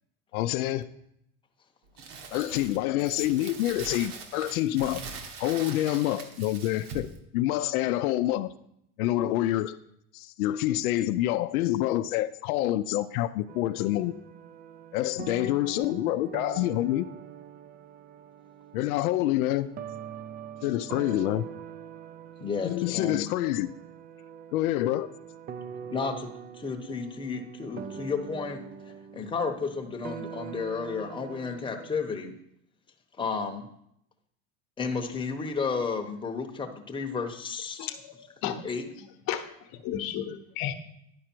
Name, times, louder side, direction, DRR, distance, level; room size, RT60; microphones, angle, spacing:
voice 1, 0.3-0.9 2.3-5.0 5.4-7.1 7.3-8.5 9.0-9.8 10.1-14.1 14.9-17.1 18.7-19.7 20.6-21.4 22.6-23.7 24.5-25.1, left 14 dB, 90° left, 10 dB, 0.5 m, -27 dB
Crumpling crinkling, 2.0-7.2, right 4 dB, 55° right, 1.3 m, -42 dB
sound 1, 13.5-31.9, right 8 dB, 25° right, 0.3 m, -43 dB
voice 2, 22.4-23.3 25.9-26.3 26.6-28.6 29.1-32.3 33.2-33.7 34.8-37.8 38.6-38.9, left 5 dB, 10° left, 3 dB, 0.9 m, -32 dB
voice 3, 37.8-38.6 39.3-40.7, left 10 dB, 55° left, 8 dB, 1.0 m, -33 dB
10.5 x 4.9 x 4.5 m, 0.75 s
supercardioid pair, 115°, 42 cm